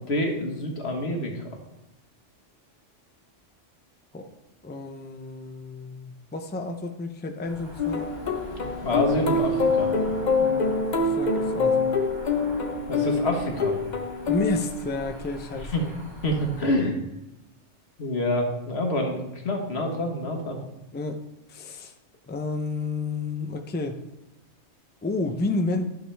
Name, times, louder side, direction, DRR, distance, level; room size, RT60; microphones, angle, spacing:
voice 1, 0.0-1.4 8.8-9.9 12.9-13.7 15.7-15.8 16.2-17.0 18.0-20.6, left 1 dB, 60° left, 2 dB, 1.6 m, -27 dB
voice 2, 4.6-8.1 10.4-12.0 14.3-15.9 20.9-21.2 21.5-21.9 22.3-24.0 25.0-25.9, left 3 dB, 15° left, 6 dB, 0.4 m, -31 dB
Cricket / Motor vehicle (road), 7.4-16.7, equal, 40° right, 2.7 m, -41 dB
sound 1, 7.8-15.3, left 3 dB, 40° left, 1.0 m, -25 dB
12.0 x 6.6 x 3.4 m, 0.91 s
omnidirectional pair, 1.3 m